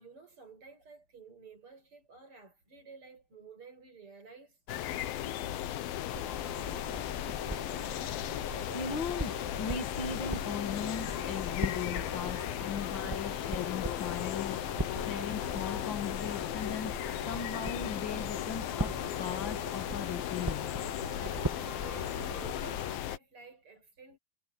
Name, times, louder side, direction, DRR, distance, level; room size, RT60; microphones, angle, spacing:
voice 1, 0.0-4.6 12.1-12.3 16.1-16.2 21.1-24.2, right 5 dB, 35° right, 8.4 m, -53 dB
sound 1, 4.7-23.2, left 12 dB, 80° left, 2.9 m, -36 dB
sound 2, 6.1-23.0, right 1 dB, 10° right, 1.5 m, -41 dB
voice 2, 8.7-14.6 14.9-20.7, left 6 dB, 45° left, 1.8 m, -38 dB
omnidirectional pair, 4.2 m